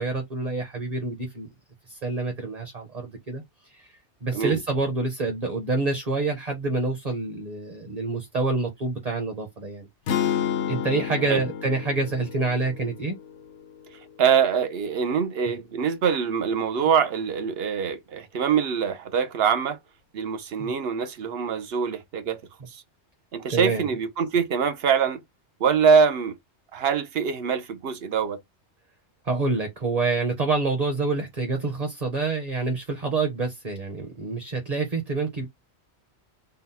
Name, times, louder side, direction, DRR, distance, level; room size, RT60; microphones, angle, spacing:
voice 1, 0.0-1.5 1.9-3.4 3.7-3.9 4.2-9.9 10.7-13.2 20.6-20.7 23.5-23.9 29.2-35.5, right 3 dB, 35° right, 1.0 m, -27 dB
sound 1, 10.1-14.2, left 9 dB, 80° left, 1.0 m, -31 dB
voice 2, 14.2-19.8 20.1-22.4 22.7-22.8 23.3-25.2 25.6-26.4 26.7-28.4, right 6 dB, 65° right, 0.9 m, -24 dB
4.0 x 2.2 x 4.1 m
omnidirectional pair, 1.2 m